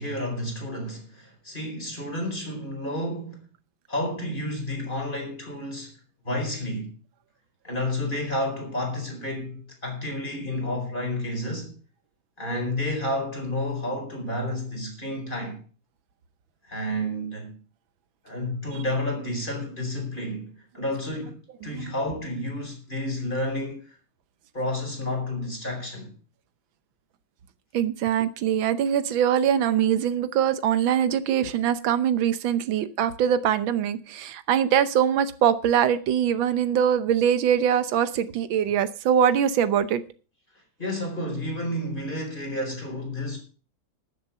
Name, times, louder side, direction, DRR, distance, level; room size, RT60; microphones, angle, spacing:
voice 1, 0.0-3.5 3.9-6.0 6.2-6.9 7.6-11.8 12.4-15.6 16.6-17.5 18.2-24.0 24.5-26.1 40.8-43.4, left 1 dB, 25° left, 4.6 m, -30 dB
voice 2, 21.6-21.9 27.7-40.0, right 9 dB, 90° right, 1.7 m, -23 dB
12.5 x 7.4 x 7.2 m
omnidirectional pair, 2.1 m